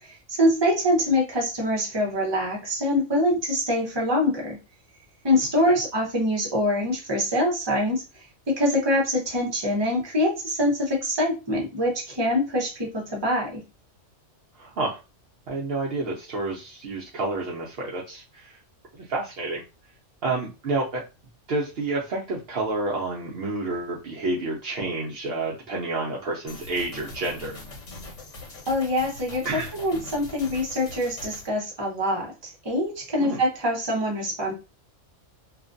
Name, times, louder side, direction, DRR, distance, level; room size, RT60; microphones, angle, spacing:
voice 1, 0.0-4.6 5.2-8.0 8.5-13.6 28.7-34.5, left 1 dB, 25° right, -1 dB, 0.7 m, -24 dB
voice 2, 14.6-15.0 15.5-18.6 18.9-19.6 20.2-21.0 21.5-27.6 29.4-29.7 33.2-33.4, right 2 dB, 60° right, -4 dB, 0.7 m, -29 dB
sound 1, 26.5-31.5, left 2 dB, 70° left, 1.2 m, -41 dB
2.4 x 2.2 x 2.5 m, 0.28 s
omnidirectional pair, 1.3 m